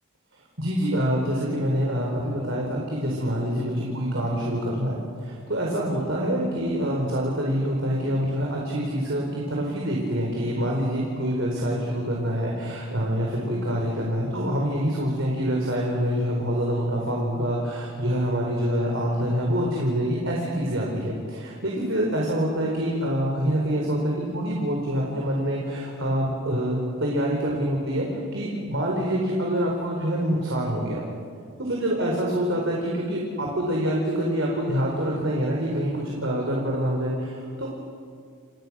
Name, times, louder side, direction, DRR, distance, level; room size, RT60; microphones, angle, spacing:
voice 1, 0.6-31.0 31.6-37.7, equal, 60° right, -1 dB, 4.6 m, -26 dB
30.0 x 29.0 x 6.4 m, 2.1 s
head